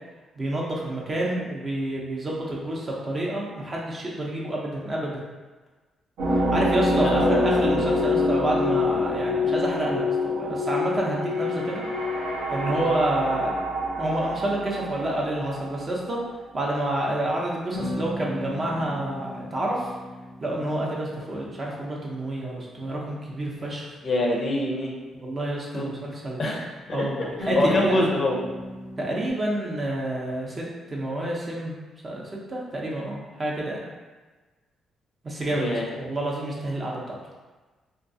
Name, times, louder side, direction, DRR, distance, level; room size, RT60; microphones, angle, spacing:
voice 1, 0.4-5.2 6.3-11.8 12.5-13.5 14.0-16.2 16.5-19.8 20.4-23.9 25.2-26.5 26.9-27.9 29.0-30.6 30.9-31.7 32.0-33.9 35.2-37.2, right 1 dB, 35° right, -3 dB, 0.6 m, -29 dB
sound 1, 6.2-16.0, left 2 dB, 85° right, 0.6 m, -26 dB
voice 2, 7.0-7.5 12.7-12.9 24.0-24.9 25.7-25.9 26.4-28.4 35.5-35.8, left 1 dB, 40° left, 0 dB, 0.4 m, -25 dB
sound 2, 11.1-13.4 17.7-22.5 27.4-29.3, left 1 dB, 60° right, 0.9 m, -37 dB
2.3 x 2.3 x 2.6 m, 1.3 s
cardioid pair, 90°, 0 cm